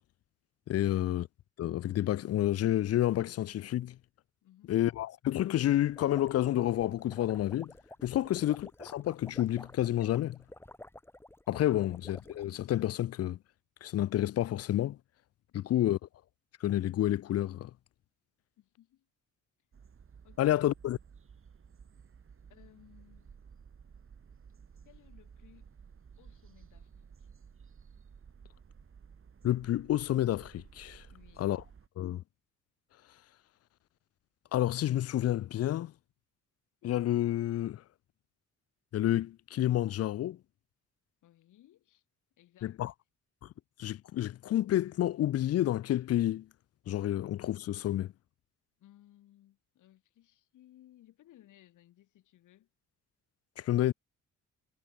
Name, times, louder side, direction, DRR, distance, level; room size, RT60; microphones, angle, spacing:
voice 1, 0.7-1.3 1.6-4.0 4.7-7.7 8.0-10.4 11.5-13.4 13.8-15.0 15.5-16.0 16.6-17.7 20.4-21.0 29.4-31.0 31.4-31.6 32.0-32.2 34.5-35.9 36.8-37.8 38.9-40.4 42.6-42.9 43.8-46.5 46.9-48.1 53.6-53.9, left 13 dB, 55° left, 0.5 m, -29 dB
voice 2, 4.4-4.8 15.5-15.9 18.6-19.1 20.2-20.7 22.5-23.3 24.8-25.8 26.2-27.3 31.1-31.5 41.2-42.0 42.4-42.8 48.8-52.7, left 13 dB, 80° left, 7.2 m, -61 dB
sound 1, 5.7-12.6, left 1 dB, 10° left, 2.2 m, -52 dB
sound 2, 19.7-31.9, right 6 dB, 45° right, 7.4 m, -55 dB
cardioid pair, 90°, 30 cm